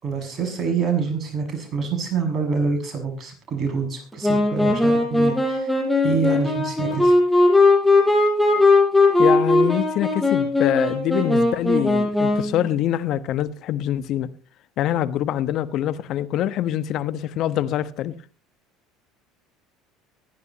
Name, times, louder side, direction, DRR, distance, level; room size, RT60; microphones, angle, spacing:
voice 1, 0.0-5.7 6.0-7.1, right 5 dB, 40° right, 6.7 m, -26 dB
Wind instrument woodwind instrument, 4.2-12.6, left 2 dB, 5° left, 6.4 m, -18 dB
voice 2, 9.2-14.3 14.8-18.1, left 12 dB, 60° left, 1.2 m, -24 dB
24.0 x 11.0 x 3.0 m
hypercardioid pair, 75°, 0 cm